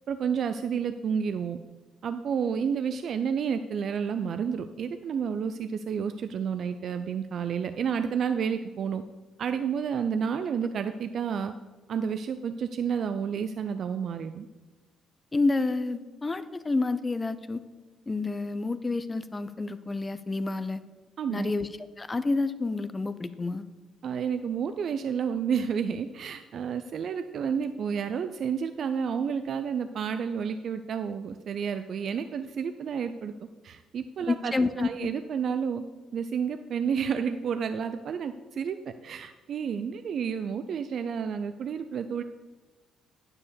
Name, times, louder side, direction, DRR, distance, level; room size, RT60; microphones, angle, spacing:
voice 1, 0.1-1.6 2.0-9.0 9.4-11.5 11.9-14.5 21.2-21.5 24.0-33.3 33.6-35.8 36.1-38.8 39.0-42.2, right 7 dB, 60° right, 9 dB, 0.4 m, -30 dB
voice 2, 15.3-17.6 18.1-20.8 21.3-21.7 22.0-23.6 34.3-35.1, left 3 dB, 25° left, 13 dB, 0.6 m, -29 dB
9.7 x 4.7 x 7.0 m, 1.2 s
supercardioid pair, 60°, 0 cm